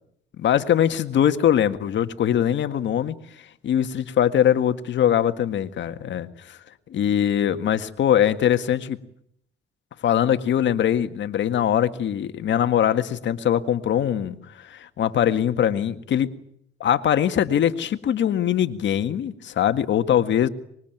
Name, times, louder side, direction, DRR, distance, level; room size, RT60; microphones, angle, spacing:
voice 1, 0.4-3.2 3.6-6.6 6.9-9.0 10.0-16.3 16.8-20.5, left 10 dB, 65° left, 10 dB, 1.8 m, -22 dB
24.5 x 22.0 x 9.2 m, 0.72 s
cardioid pair, 90°, 20 cm